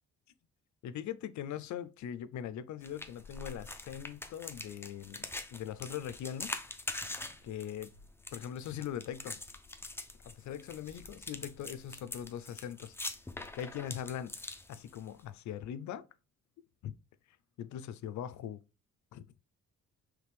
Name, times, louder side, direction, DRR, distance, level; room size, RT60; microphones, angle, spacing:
voice 1, 0.8-6.6 7.4-7.9 8.3-9.4 10.2-13.0 13.5-14.3 14.7-16.1 16.8-16.9 17.6-18.6 19.1-19.3, left 9 dB, 70° left, 0.5 m, -41 dB
sound 1, 2.8-15.2, left 2 dB, 10° left, 0.6 m, -44 dB
4.9 x 3.3 x 3.3 m
cardioid pair, 90°, 30 cm